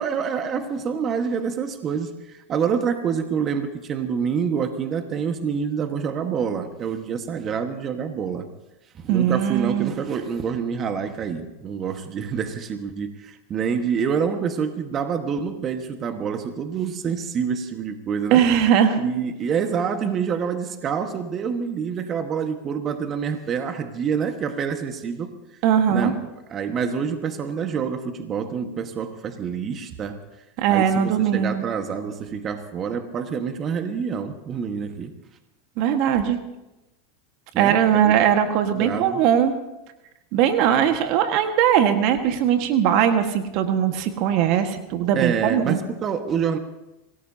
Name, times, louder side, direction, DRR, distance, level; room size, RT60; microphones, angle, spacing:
voice 1, 0.0-8.5 9.0-18.5 19.0-25.3 25.9-26.1 26.5-30.2 30.7-35.1 37.5-38.1 38.7-39.2 45.1-46.6, right 6 dB, 35° right, 7 dB, 1.5 m, -27 dB
voice 2, 9.1-9.9 18.3-19.0 25.6-26.1 30.6-31.6 35.8-36.4 37.6-39.5 40.3-45.8, right 9 dB, 55° right, 7 dB, 1.6 m, -20 dB
26.0 x 18.0 x 2.8 m, 0.97 s
hypercardioid pair, 100°, 0 cm